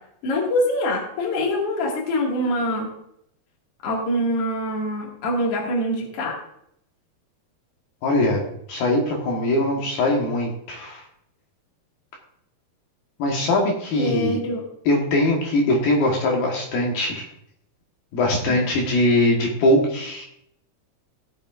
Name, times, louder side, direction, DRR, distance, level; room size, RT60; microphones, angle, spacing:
voice 1, 0.2-2.9 3.8-6.4 14.0-14.6 18.5-18.6, left 1 dB, 45° left, -2 dB, 2.6 m, -24 dB
voice 2, 8.0-8.4 8.7-11.0 13.2-14.4 14.8-17.3 18.1-20.3, left 1 dB, 70° left, -1 dB, 3.2 m, -21 dB
17.5 x 6.9 x 2.5 m, 0.73 s
omnidirectional pair, 4.6 m